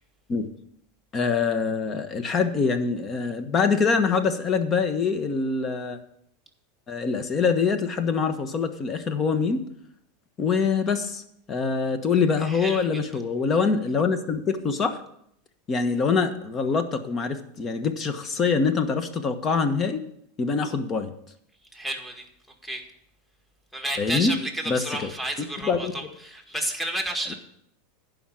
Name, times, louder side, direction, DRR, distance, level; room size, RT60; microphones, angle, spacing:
voice 1, 1.1-6.0 6.9-9.6 10.4-11.2 11.5-15.0 15.7-20.0 20.4-21.1 24.0-24.4 24.7-25.1 25.4-25.9, left 5 dB, 30° left, 9 dB, 1.3 m, -24 dB
voice 2, 12.4-12.9 21.7-22.3 22.6-22.8 23.7-27.3, right 1 dB, 5° left, 2 dB, 1.9 m, -31 dB
11.0 x 5.3 x 7.6 m, 0.72 s
hypercardioid pair, 110°, 0 cm